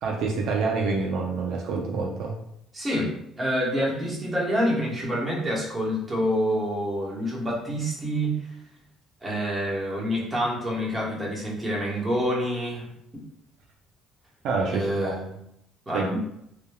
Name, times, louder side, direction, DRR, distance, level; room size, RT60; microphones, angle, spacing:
voice 1, 0.0-2.4 14.4-15.2 15.9-16.1, right 4 dB, 70° right, 0 dB, 0.4 m, -27 dB
voice 2, 2.7-8.3 9.2-12.9 13.1-13.2 14.7-15.3 15.9-16.2, equal, 15° right, -4 dB, 1.0 m, -27 dB
3.3 x 2.2 x 2.2 m, 0.74 s
cardioid pair, 110°, 0 cm